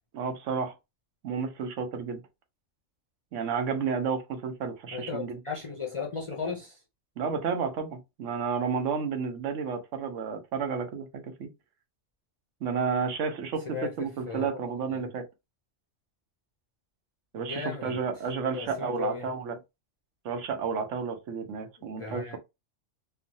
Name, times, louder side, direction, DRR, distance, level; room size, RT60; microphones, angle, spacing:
voice 1, 0.1-0.8 1.2-2.2 3.3-5.4 7.2-11.5 12.6-15.2 17.3-19.6 20.2-22.4, right 5 dB, 90° right, 1.0 m, -31 dB
voice 2, 4.9-6.8 13.7-14.5 14.9-15.0 17.4-18.0 18.5-19.3 22.0-22.4, left 5 dB, 45° left, 0.4 m, -36 dB
3.0 x 2.1 x 2.6 m
omnidirectional pair, 1.2 m